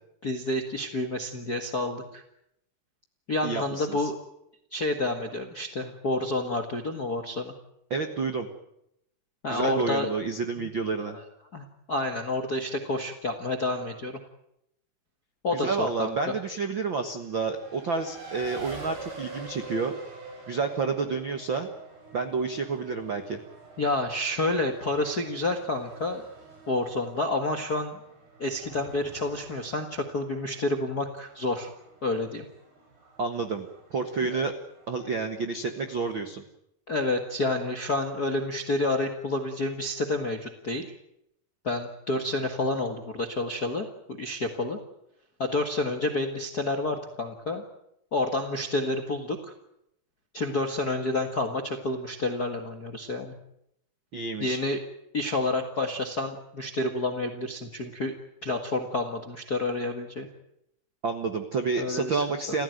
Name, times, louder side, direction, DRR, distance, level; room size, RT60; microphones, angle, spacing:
voice 1, 0.2-2.2 3.3-4.1 4.7-7.5 9.4-10.1 10.6-10.7 11.0-11.2 11.5-14.2 15.4-16.3 23.8-26.2 26.7-28.0 28.4-31.7 32.0-32.5 34.3-34.4 36.9-40.9 41.6-44.8 45.4-47.6 48.1-49.5 50.3-53.3 54.4-54.8 55.1-58.1 58.4-60.3 61.8-62.2, left 2 dB, 45° left, 5 dB, 1.2 m, -29 dB
voice 2, 3.4-4.1 7.9-8.5 9.5-11.2 15.5-19.9 20.5-21.7 22.1-23.4 33.2-34.5 34.9-36.4 54.1-54.6 61.0-62.6, right 4 dB, 60° right, 7 dB, 1.3 m, -29 dB
Race car auto racing, 17.2-36.3, right 3 dB, 80° right, 8.5 m, -47 dB
29.0 x 15.5 x 9.3 m, 0.79 s
omnidirectional pair, 4.6 m